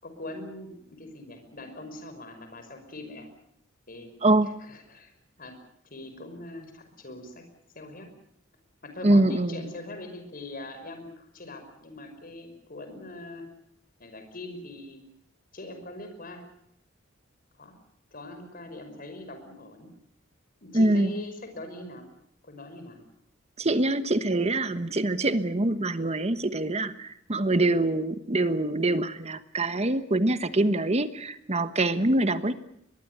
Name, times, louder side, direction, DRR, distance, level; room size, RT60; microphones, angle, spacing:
voice 1, 0.0-3.3 3.9-4.1 4.6-5.1 5.4-5.6 5.8-7.4 7.8-8.1 8.8-13.5 14.0-15.0 15.5-16.4 17.6-17.7 18.1-19.9 20.6-22.1 22.4-23.0, left 2 dB, 45° left, 7 dB, 5.5 m, -42 dB
voice 2, 9.0-9.6 20.7-21.1 23.6-32.5, right 2 dB, 35° right, 12 dB, 1.2 m, -24 dB
23.5 x 21.5 x 8.1 m, 0.73 s
head